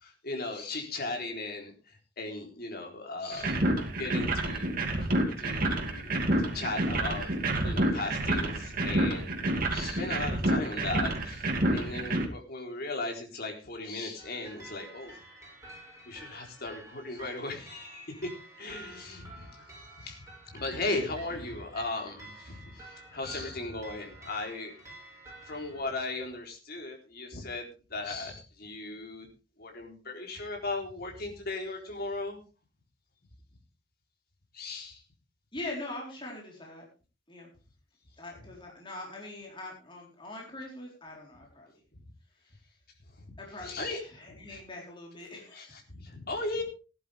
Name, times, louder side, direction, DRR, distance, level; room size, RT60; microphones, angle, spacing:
voice 1, 0.0-3.6 3.9-4.7 5.4-11.5 11.7-15.2 16.1-18.3 18.6-19.6 20.0-24.7 25.5-29.3 29.6-32.4 34.5-35.0 43.2-43.3 43.6-44.0 44.3-44.6 45.5-46.6, left 2 dB, 55° left, 2 dB, 4.0 m, -37 dB
sound 1, 3.3-12.3, right 1 dB, 50° right, 2.7 m, -29 dB
sound 2, 14.2-25.8, right 2 dB, 15° right, 7.9 m, -50 dB
voice 2, 35.5-36.8 37.3-37.5 38.2-41.7 43.4-45.8, left 2 dB, 25° left, -2 dB, 4.3 m, -42 dB
18.0 x 11.0 x 3.5 m, 0.33 s
head